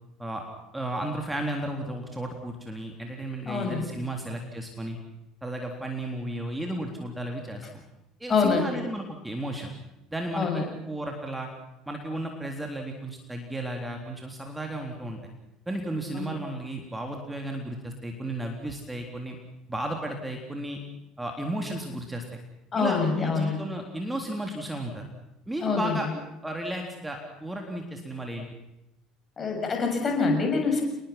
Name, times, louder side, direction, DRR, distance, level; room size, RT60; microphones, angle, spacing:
voice 1, 0.7-5.0 5.4-7.8 8.2-9.7 10.1-11.5 11.9-15.2 15.7-19.4 19.7-20.8 21.2-22.2 22.8-25.1 25.5-26.1 26.4-28.5, right 1 dB, 10° right, 2 dB, 3.7 m, -34 dB
voice 2, 3.5-3.9 8.3-8.8 10.3-10.7 16.2-16.3 22.7-23.6 25.6-26.1 29.4-30.8, left 4 dB, 30° left, 3 dB, 7.2 m, -26 dB
28.0 x 21.0 x 6.0 m, 0.90 s
figure-of-eight pair, 60°, 0 cm